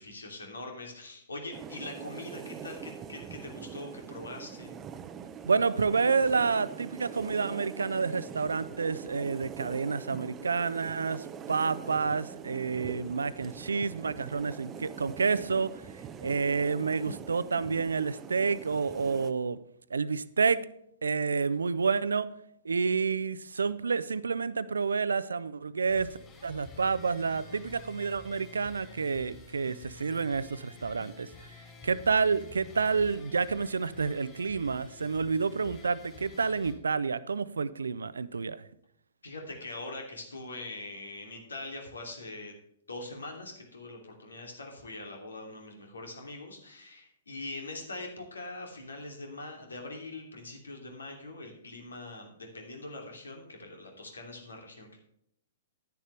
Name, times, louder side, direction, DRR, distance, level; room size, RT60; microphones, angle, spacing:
voice 1, 0.0-4.7 39.2-42.5 42.9-55.0, left 2 dB, 75° left, 2.8 m, -42 dB
sound 1, 1.5-19.3, right 7 dB, 20° right, 0.6 m, -44 dB
voice 2, 5.4-15.8 16.2-19.6 19.9-20.7 21.0-22.3 22.6-31.5 31.8-38.6, right 5 dB, 75° right, 0.6 m, -29 dB
sound 2, 25.9-36.7, left 4 dB, 20° left, 4.8 m, -50 dB
11.0 x 10.5 x 3.3 m
figure-of-eight pair, 110°, 0 cm